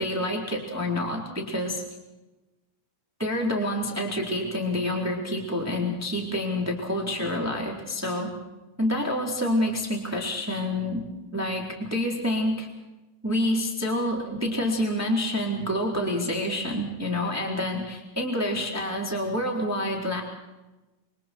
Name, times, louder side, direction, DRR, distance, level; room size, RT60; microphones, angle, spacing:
voice 1, 0.0-1.8 3.2-8.3 8.8-11.0 11.3-12.7 13.2-20.2, left 1 dB, 5° right, 0 dB, 3.4 m, -27 dB
28.5 x 24.5 x 4.6 m, 1.1 s
omnidirectional pair, 4.6 m